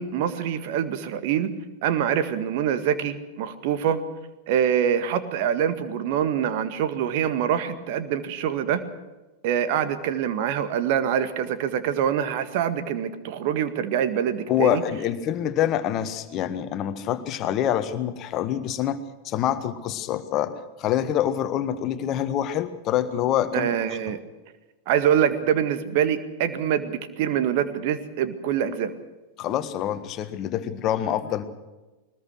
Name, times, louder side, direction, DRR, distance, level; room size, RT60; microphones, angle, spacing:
voice 1, 0.0-1.5 1.8-4.0 4.5-8.8 9.4-14.8 23.5-24.2 24.9-28.9, right 9 dB, 50° right, 11 dB, 1.9 m, -25 dB
voice 2, 14.5-24.0 29.4-31.4, left 11 dB, 35° left, 11 dB, 1.6 m, -26 dB
21.5 x 20.0 x 6.4 m, 1.1 s
figure-of-eight pair, 90°, 0 cm